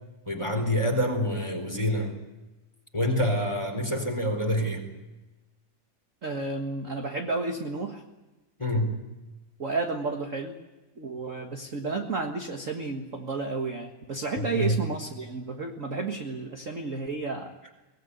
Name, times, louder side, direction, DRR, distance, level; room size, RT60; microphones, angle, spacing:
voice 1, 0.3-2.2 2.9-4.8 8.6-9.0 14.4-14.8, equal, 10° left, 4 dB, 3.9 m, -27 dB
voice 2, 6.2-8.0 9.6-10.5 11.0-17.5, right 3 dB, 40° right, 3 dB, 1.2 m, -32 dB
23.0 x 19.5 x 9.5 m, 1.1 s
omnidirectional pair, 3.6 m